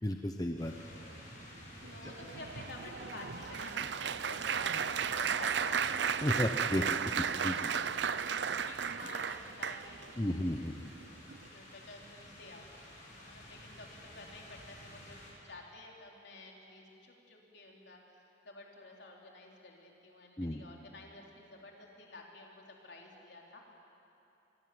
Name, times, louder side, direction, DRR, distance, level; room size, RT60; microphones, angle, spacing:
voice 1, 0.0-0.7 2.0-2.1 6.2-7.0 7.4-7.7 10.2-10.9 20.4-20.6, left 1 dB, 20° left, 4 dB, 0.9 m, -33 dB
voice 2, 0.6-1.2 1.9-6.2 6.5-6.6 7.1-7.3 7.8-8.0 8.7-10.4 11.0-11.1 11.5-23.6, left 2 dB, 60° left, -1 dB, 4.0 m, -51 dB
sound 1, 0.6-15.3, left 1 dB, 40° left, 6.8 m, -52 dB
Applause, 1.8-10.1 10.8-11.0 11.3-11.5, right 7 dB, 65° right, 0.6 m, -34 dB
25.5 x 23.5 x 7.9 m, 2.8 s
head